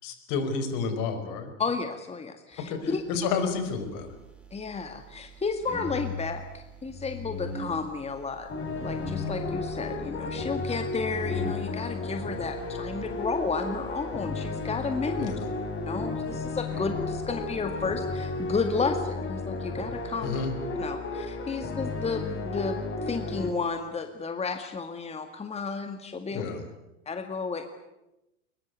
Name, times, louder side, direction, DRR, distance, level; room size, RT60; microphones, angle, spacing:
voice 1, 0.0-1.5 2.7-4.1 15.2-15.4 20.2-20.5 26.3-26.6, left 5 dB, 55° left, 8 dB, 4.9 m, -30 dB
voice 2, 1.6-3.0 4.5-8.5 8.8-15.4 15.9-20.4 20.8-26.4 27.1-27.7, left 4 dB, 15° left, 7 dB, 2.0 m, -32 dB
sound 1, 3.3-18.7, left 1 dB, 5° right, 4.6 m, -42 dB
sound 2, 8.5-23.5, left 3 dB, 30° left, 6.3 m, -33 dB
22.0 x 21.5 x 9.5 m, 0.93 s
hypercardioid pair, 90°, 38 cm